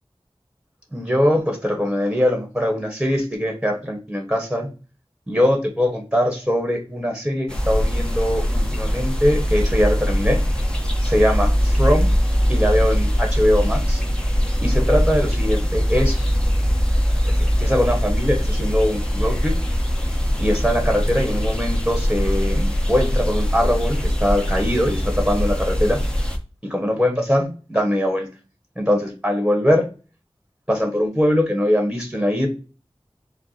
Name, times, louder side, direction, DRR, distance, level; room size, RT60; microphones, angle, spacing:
voice 1, 0.9-4.7 5.3-10.4 11.0-12.1 12.5-14.0 14.6-16.3 17.2-19.5 20.4-26.0 26.7-28.3 28.8-29.9 30.7-32.5, equal, 10° right, 2 dB, 1.3 m, -21 dB
sound 1, 7.5-26.4, equal, 10° left, 1.0 m, -21 dB
4.6 x 2.1 x 4.0 m, 0.33 s
wide cardioid pair, 50°, 10 cm